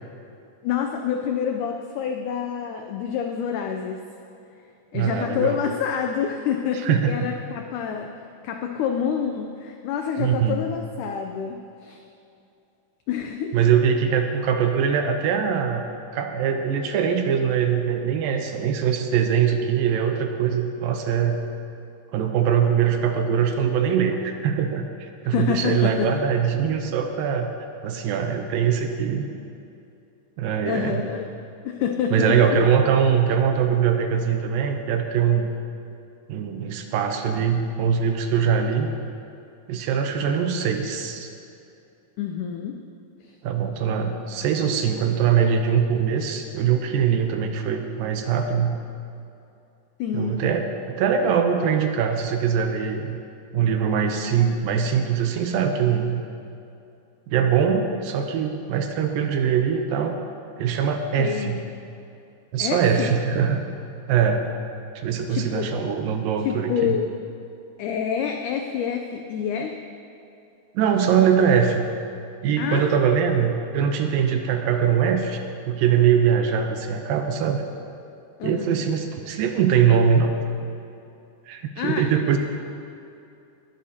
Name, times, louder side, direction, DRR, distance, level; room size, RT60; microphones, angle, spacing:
voice 1, 0.6-4.0 4.9-8.1 8.4-12.0 13.1-13.6 25.3-26.1 30.7-31.3 31.6-32.3 42.2-42.8 43.2-43.3 50.0-50.5 61.2-61.8 62.6-63.2 65.3-65.7 66.5-67.1 67.8-69.7 72.6-73.0 78.4-78.8 81.8-82.0, left 7 dB, 85° left, 4 dB, 1.8 m, -27 dB
voice 2, 4.9-5.6 6.8-7.1 10.2-10.7 13.5-21.4 22.1-27.5 27.8-29.3 30.4-31.1 32.1-35.5 36.3-38.9 39.7-41.3 43.4-48.7 50.1-53.2 53.5-56.2 57.3-60.2 60.6-61.6 62.5-63.6 64.1-64.5 65.0-67.0 70.7-71.9 72.4-75.4 75.7-77.6 78.4-80.3 81.5-82.4, right 7 dB, 80° right, 5 dB, 2.4 m, -22 dB
19.0 x 11.5 x 2.8 m, 2.7 s
omnidirectional pair, 4.3 m